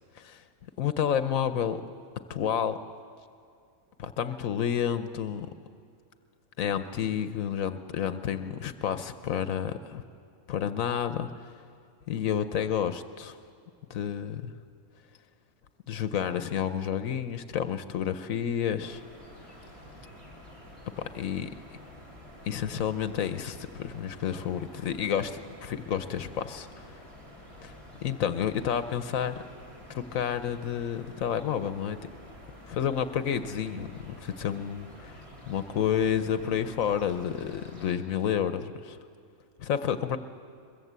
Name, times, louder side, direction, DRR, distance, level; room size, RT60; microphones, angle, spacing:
voice 1, 0.8-1.8 2.3-2.8 4.0-5.5 6.6-10.0 10.5-11.5 12.1-13.4 13.9-14.5 15.9-19.0 21.0-21.5 22.5-26.9 27.6-27.7 28.0-29.4 29.9-32.0 32.7-39.0 39.6-40.2, left 8 dB, 80° left, 11 dB, 1.2 m, -30 dB
sound 1, 18.8-38.0, left 1 dB, 25° right, 4.5 m, -49 dB
22.5 x 22.0 x 8.1 m, 2.4 s
omnidirectional pair, 1.4 m